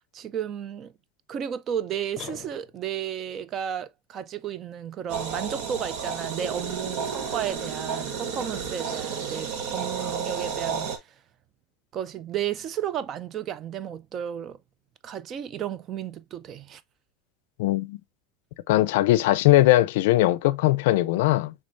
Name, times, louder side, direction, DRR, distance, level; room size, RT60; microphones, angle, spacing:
voice 1, 0.1-0.9 1.3-10.9 11.9-14.6 15.0-16.8, right 9 dB, 35° right, 0.4 m, -33 dB
sound 1, 2.2-3.1, left 10 dB, 35° left, 0.7 m, -42 dB
sound 2, 5.1-11.0, right 6 dB, 65° right, 1.1 m, -32 dB
voice 2, 17.6-18.0 18.7-21.5, left 16 dB, 80° left, 0.4 m, -20 dB
5.4 x 3.4 x 2.5 m
supercardioid pair, 150°, 0 cm